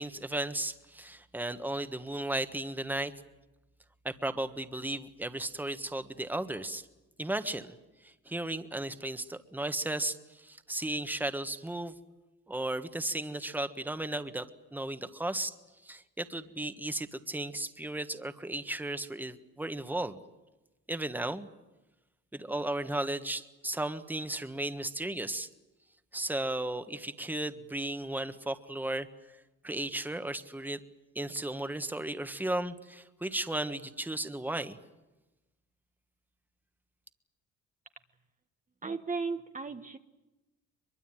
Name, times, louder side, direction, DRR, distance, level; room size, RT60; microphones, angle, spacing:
voice 1, 0.0-3.1 4.0-6.9 7.2-7.7 8.0-11.9 12.5-15.5 15.8-20.2 20.9-21.5 22.3-25.5 26.1-29.1 29.6-30.8 31.1-34.8, right 1 dB, 5° right, 9 dB, 1.5 m, -35 dB
voice 2, 38.8-40.0, right 4 dB, 25° right, 6 dB, 1.2 m, -35 dB
23.0 x 22.5 x 9.1 m, 1.1 s
cardioid pair, 90°, 30 cm